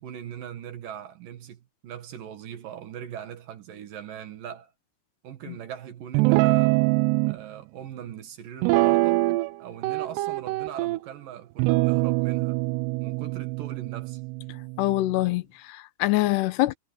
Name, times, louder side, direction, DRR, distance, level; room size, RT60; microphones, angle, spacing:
voice 1, 0.0-4.7 5.2-6.8 7.2-9.2 9.6-12.6 13.0-14.2, right 9 dB, 60° right, 3.0 m, -40 dB
Guitar, 6.1-7.4 8.6-9.5 9.8-11.0 11.6-15.1, right 22 dB, 85° right, 2.6 m, -24 dB
voice 2, 14.8-16.7, left 18 dB, 80° left, 2.9 m, -25 dB
omnidirectional pair, 4.8 m